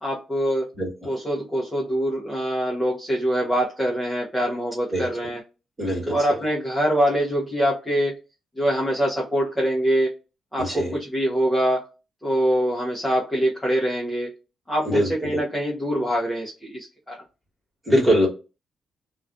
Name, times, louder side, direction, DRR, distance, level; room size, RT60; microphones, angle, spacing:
voice 1, 0.0-0.7 1.1-5.4 6.1-8.1 8.6-10.1 10.5-11.9 12.2-14.3 14.7-17.2, equal, 5° left, -4 dB, 0.5 m, -24 dB
voice 2, 0.8-1.1 4.9-5.1 5.8-6.4 10.6-11.0 14.8-15.1 17.8-18.3, equal, 15° right, -3 dB, 1.2 m, -22 dB
2.3 x 2.2 x 2.4 m, 0.30 s
cardioid pair, 160°, 0 cm